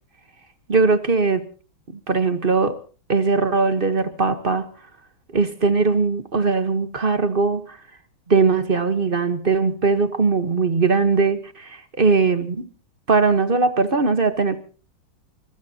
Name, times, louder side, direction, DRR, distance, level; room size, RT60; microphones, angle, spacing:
voice 1, 0.7-1.5 1.9-2.8 3.1-4.7 5.3-7.8 8.3-12.7 13.1-14.6, right 4 dB, 35° right, 1.0 m, -20 dB
23.0 x 21.5 x 2.8 m
omnidirectional pair, 2.2 m